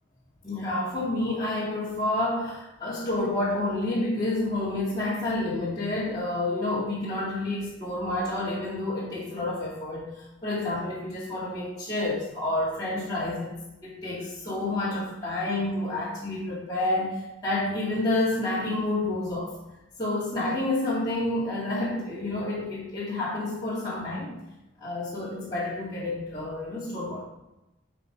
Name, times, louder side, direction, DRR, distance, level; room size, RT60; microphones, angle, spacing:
voice 1, 0.4-13.5 13.8-19.5 20.0-24.4 24.8-27.2, left 2 dB, 20° left, -10 dB, 2.3 m, -29 dB
11.0 x 4.8 x 4.6 m, 0.94 s
head